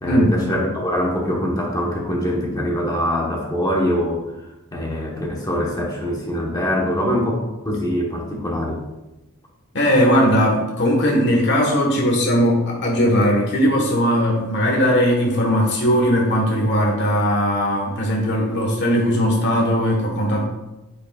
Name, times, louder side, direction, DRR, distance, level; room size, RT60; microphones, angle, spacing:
voice 1, 0.0-8.8, equal, 15° left, -2 dB, 1.1 m, -23 dB
voice 2, 9.7-20.5, equal, 55° left, -1 dB, 1.4 m, -18 dB
9.2 x 5.1 x 2.4 m, 1.0 s
head